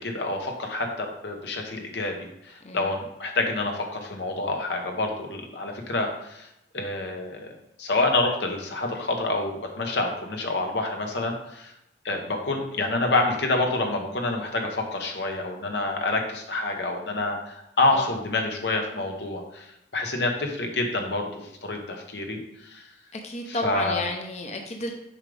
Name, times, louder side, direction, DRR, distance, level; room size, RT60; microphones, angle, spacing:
voice 1, 0.0-2.2 2.4-6.5 6.7-7.5 7.8-11.7 12.0-22.8 23.5-24.0, left 2 dB, 75° left, 2 dB, 1.1 m, -27 dB
voice 2, 23.1-24.9, left 2 dB, 40° left, 3 dB, 0.7 m, -31 dB
7.3 x 5.1 x 3.4 m, 0.84 s
head